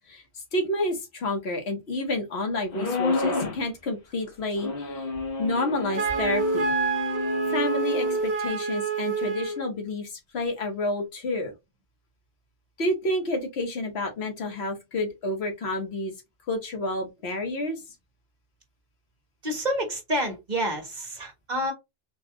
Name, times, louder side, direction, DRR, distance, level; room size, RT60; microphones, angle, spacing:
voice 1, 0.1-5.1 5.4-6.7 7.4-11.5 12.8-16.1 16.5-17.8, left 1 dB, 85° left, 1.3 m, -29 dB
sound 1, 2.7-3.6 4.6-8.2, left 3 dB, 60° left, 1.0 m, -30 dB
Wind instrument woodwind instrument, 5.9-9.7, right 5 dB, 85° right, 1.4 m, -27 dB
voice 2, 19.4-21.7, equal, 45° right, 1.3 m, -28 dB
4.0 x 2.3 x 2.9 m
omnidirectional pair, 1.1 m